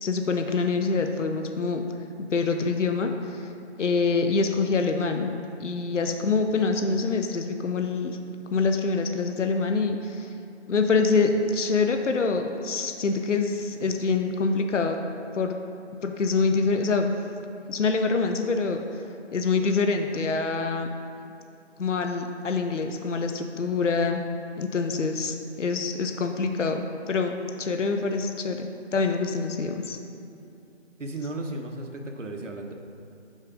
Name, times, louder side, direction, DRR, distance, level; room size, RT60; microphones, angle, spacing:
voice 1, 0.0-1.8 2.2-3.5 3.8-5.3 5.6-8.2 8.5-10.3 10.7-15.0 15.3-15.6 16.0-17.1 17.7-18.8 19.3-20.9 21.8-24.2 24.6-30.0, left 4 dB, 80° left, 5 dB, 0.7 m, -25 dB
voice 2, 31.0-32.7, right 2 dB, 85° right, 3 dB, 1.1 m, -34 dB
6.4 x 4.9 x 5.0 m, 2.7 s
figure-of-eight pair, 175°, 36 cm